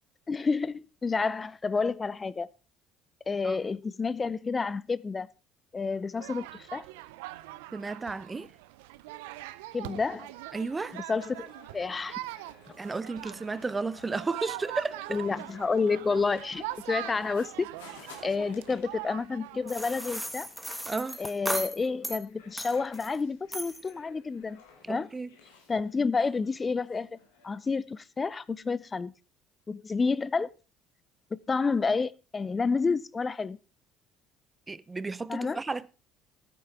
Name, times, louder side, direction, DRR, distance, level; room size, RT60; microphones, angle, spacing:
voice 1, 0.3-2.5 3.3-5.3 5.7-6.8 9.7-10.3 10.9-12.2 12.7-12.8 15.1-17.7 18.2-20.5 21.2-24.6 24.9-25.1 25.7-27.2 27.4-29.1 29.7-30.5 31.3-33.6 35.3-35.6, left 4 dB, 30° left, 0.4 m, -30 dB
sound 1, 6.2-20.0, right 17 dB, 80° right, 0.5 m, -42 dB
voice 2, 7.7-8.5 10.5-11.0 12.8-15.1 20.9-21.2 24.8-25.3 34.7-35.9, right 3 dB, 25° right, 0.6 m, -33 dB
sound 2, 9.9-27.6, left 5 dB, 85° left, 2.7 m, -57 dB
sound 3, 19.7-22.2 22.6-23.2 23.5-23.9, equal, ahead, 1.6 m, -36 dB
14.0 x 9.1 x 3.5 m
hypercardioid pair, 65°, 0 cm